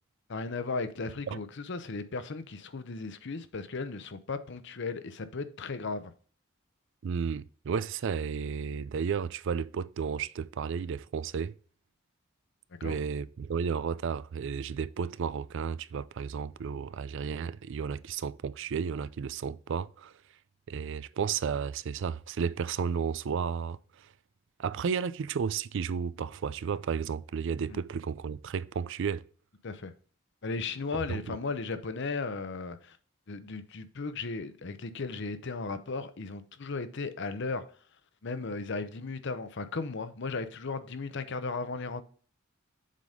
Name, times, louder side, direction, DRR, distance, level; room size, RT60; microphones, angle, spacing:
voice 1, 0.3-6.1 12.8-13.0 27.7-27.8 29.6-29.9 30.4-33.0 33.3-37.6 38.2-42.0, left 3 dB, 60° left, 0.8 m, -36 dB
voice 2, 7.0-11.5 12.8-20.1 20.7-24.1 24.6-29.3 31.1-31.4, right 6 dB, 65° right, 0.4 m, -33 dB
7.5 x 4.0 x 5.1 m
head